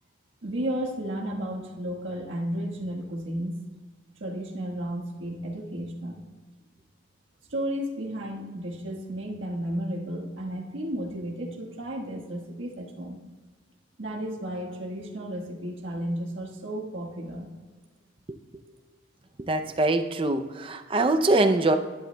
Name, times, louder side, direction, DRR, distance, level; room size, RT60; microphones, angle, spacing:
voice 1, 0.4-3.5 4.2-6.2 7.5-13.2 14.0-17.5, right 1 dB, 90° right, -1 dB, 1.4 m, -33 dB
voice 2, 19.4-21.8, right 2 dB, 30° right, 7 dB, 0.5 m, -23 dB
11.5 x 11.0 x 2.2 m, 1.4 s
head